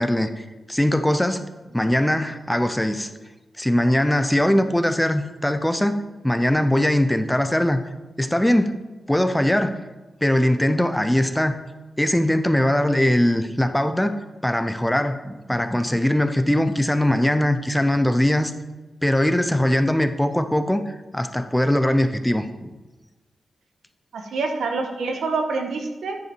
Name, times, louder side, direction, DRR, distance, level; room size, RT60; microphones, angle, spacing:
voice 1, 0.0-1.4 1.7-3.1 3.6-6.0 6.2-7.8 8.2-8.8 9.1-9.8 10.2-11.6 12.0-14.1 14.4-18.5 19.0-22.7, left 1 dB, 5° left, 9 dB, 0.5 m, -21 dB
voice 2, 24.1-26.2, right 3 dB, 90° right, 4 dB, 1.1 m, -26 dB
9.5 x 5.4 x 4.4 m, 1.2 s
wide cardioid pair, 115°, 0 cm